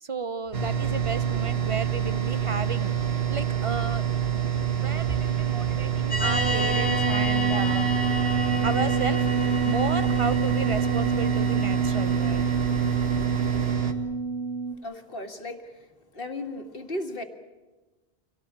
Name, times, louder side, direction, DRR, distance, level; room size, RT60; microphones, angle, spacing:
voice 1, 0.0-4.0 4.7-7.9 8.6-12.4, right 4 dB, 35° right, 13 dB, 0.8 m, -33 dB
sound 1, 0.5-13.9, right 10 dB, 70° right, 1.9 m, -27 dB
sound 2, 6.1-13.7, right 1 dB, 10° right, 3.7 m, -34 dB
sound 3, 6.2-14.8, right 3 dB, 25° left, 1.7 m, -28 dB
voice 2, 14.7-15.9 16.1-17.2, left 1 dB, 60° left, 5 dB, 2.2 m, -35 dB
25.5 x 17.5 x 8.8 m, 1.2 s
omnidirectional pair, 1.1 m